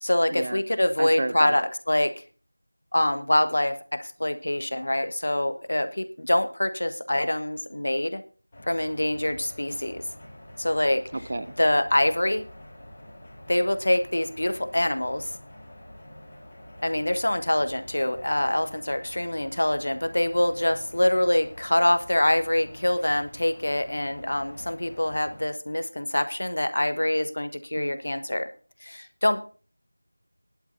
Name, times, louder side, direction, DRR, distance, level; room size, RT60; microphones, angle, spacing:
voice 1, 0.0-2.1 2.9-8.2 8.6-10.0 10.6-11.0 11.6-12.4 13.5-15.3 16.8-28.5 28.8-29.4, left 1 dB, 55° left, 10 dB, 1.3 m, -25 dB
voice 2, 1.0-1.5 11.1-11.5 27.8-28.0, right 2 dB, 30° right, 13 dB, 0.6 m, -31 dB
sound 1, 8.5-25.4, left 1 dB, 15° left, 3.8 m, -46 dB
18.5 x 11.5 x 2.7 m, 0.38 s
figure-of-eight pair, 175°, 0 cm